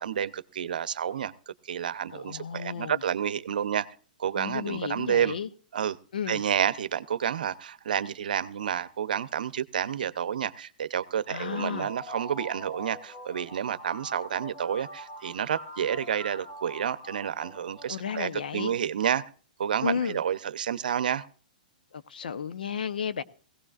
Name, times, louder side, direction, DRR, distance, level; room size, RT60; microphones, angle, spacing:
voice 1, 0.0-3.9 4.2-5.4 5.7-6.0 6.3-19.2 19.6-21.3, right 8 dB, 80° right, 15 dB, 0.7 m, -30 dB
voice 2, 2.1-3.0 4.3-5.5 6.1-6.4 11.3-11.9 17.9-18.7 19.8-20.2 21.9-23.2, left 7 dB, 85° left, 13 dB, 0.8 m, -33 dB
sound 1, 11.4-18.2, equal, 25° left, 1.8 m, -43 dB
18.0 x 16.5 x 2.5 m, 0.40 s
hypercardioid pair, 145°, 5 cm